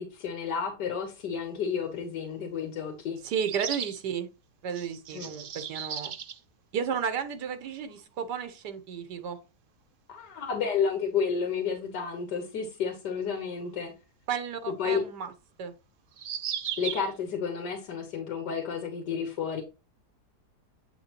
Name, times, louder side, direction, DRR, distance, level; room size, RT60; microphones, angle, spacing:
voice 1, 0.0-3.2 5.1-5.3 10.1-13.9 14.8-15.0 16.8-19.6, left 6 dB, 85° left, 1.8 m, -31 dB
sound 1, 1.9-2.0 3.4-4.0 4.7-6.4 7.6-7.7 7.9-8.0 10.4-10.5 13.7-13.8 16.1-17.1, right 9 dB, 60° right, 1.0 m, -36 dB
voice 2, 3.2-4.3 4.6-6.1 6.7-9.4 14.3-15.3 15.6-15.7, right 7 dB, 85° right, 1.5 m, -33 dB
8.4 x 5.8 x 2.9 m
omnidirectional pair, 1.8 m